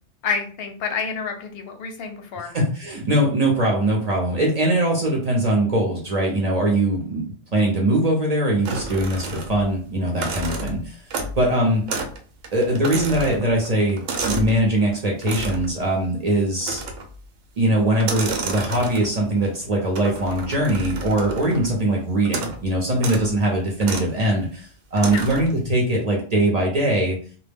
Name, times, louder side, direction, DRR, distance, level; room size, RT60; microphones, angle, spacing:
voice 1, 0.2-2.5 10.4-10.6 21.5-21.7 25.1-25.3, left 5 dB, 65° left, 4 dB, 0.7 m, -29 dB
voice 2, 2.5-7.2 7.5-11.0 11.4-11.9 12.5-16.8 17.6-27.2, right 1 dB, 45° right, -2 dB, 0.6 m, -21 dB
sound 1, 8.7-9.7 10.1-11.5 11.9-12.2 12.4-14.6 15.2-15.7 16.6-17.2 17.9-19.2 20.0-21.7 22.3-22.6 23.0-23.3 23.8-24.1 25.0-25.5, right 3 dB, 85° right, 0.9 m, -30 dB
2.2 x 2.1 x 3.3 m, 0.42 s
omnidirectional pair, 1.2 m